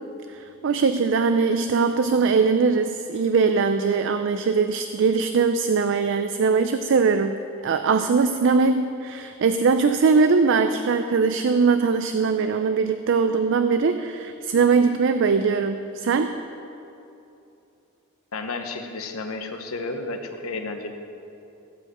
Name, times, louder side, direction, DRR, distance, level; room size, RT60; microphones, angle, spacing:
voice 1, 0.3-7.4 7.6-16.4, right 5 dB, 60° right, 9 dB, 0.4 m, -21 dB
voice 2, 18.3-20.9, left 3 dB, 85° left, 5 dB, 1.1 m, -32 dB
15.0 x 5.3 x 7.8 m, 2.8 s
head